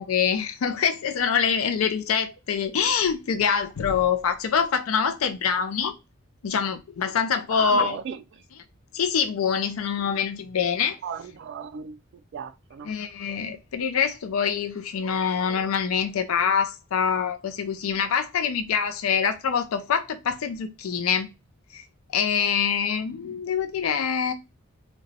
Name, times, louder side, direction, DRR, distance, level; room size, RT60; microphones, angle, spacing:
voice 1, 0.0-5.9 6.4-8.0 8.9-11.0 12.9-21.3 21.7-21.8 22.1-24.3, left 7 dB, 80° left, 0.4 m, -25 dB
voice 2, 7.5-8.4 11.0-12.9, right 7 dB, 60° right, 0.3 m, -36 dB
3.9 x 2.2 x 2.6 m
head